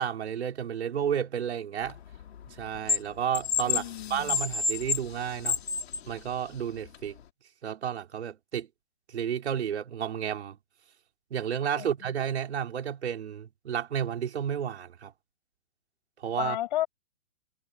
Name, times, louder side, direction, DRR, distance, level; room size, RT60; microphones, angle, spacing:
voice 1, 0.0-2.0 2.5-5.6 6.1-7.2 7.6-8.7 9.1-10.6 11.3-15.1 16.2-16.6, right 8 dB, 60° right, 5.3 m, -32 dB
sound 1, 1.9-3.0 3.3-6.1 6.9-7.0, left 6 dB, 55° left, 3.4 m, -29 dB
voice 2, 3.6-4.4 11.7-12.1 16.4-16.9, left 14 dB, 40° left, 6.8 m, -33 dB
hypercardioid pair, 165°, 37 cm